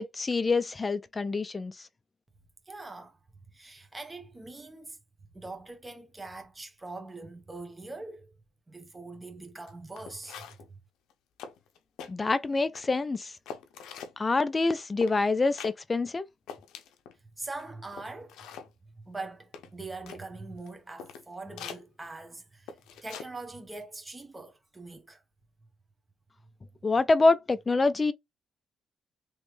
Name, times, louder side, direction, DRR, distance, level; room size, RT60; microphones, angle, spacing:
voice 1, 0.0-1.9 12.1-13.3 14.2-16.3 26.8-28.1, left 3 dB, 25° left, 0.5 m, -26 dB
voice 2, 2.7-3.2 3.5-5.0 5.3-8.3 8.7-10.8 17.4-18.4 18.9-22.8 23.0-25.2, right 3 dB, 15° right, 1.1 m, -42 dB
sound 1, 9.7-9.8 10.0-10.7 11.1-11.2 11.4-12.1 12.5-13.0 13.5-14.2 15.0-15.2 15.6-15.8 16.1-16.2 16.5-17.2 17.6-17.7 17.9-18.7 19.5-20.2 20.7-20.8 21.0-21.2 21.6-21.8 22.7-23.3 23.6-23.8, left 7 dB, 90° left, 0.7 m, -43 dB
3.2 x 3.1 x 3.2 m
cardioid pair, 90°, 0 cm